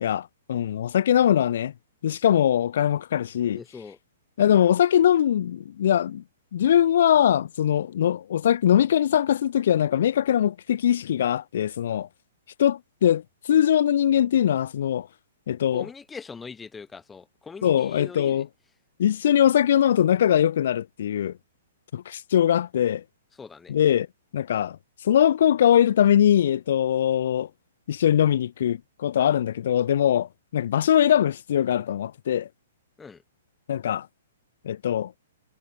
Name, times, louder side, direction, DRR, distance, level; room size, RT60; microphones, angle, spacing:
voice 1, 0.0-1.7 2.0-3.6 4.4-6.2 6.5-12.1 12.6-13.2 13.5-15.1 15.5-15.9 17.6-18.5 19.0-21.3 21.9-23.0 23.7-24.1 24.3-24.8 25.0-27.5 27.9-30.3 30.5-32.5 33.7-34.1 34.6-35.1, left 10 dB, 50° left, 0.4 m, -21 dB
voice 2, 3.5-4.0 15.7-18.4 23.4-23.7 33.0-33.2, left 5 dB, 10° left, 0.8 m, -41 dB
figure-of-eight pair, 115°, 0 cm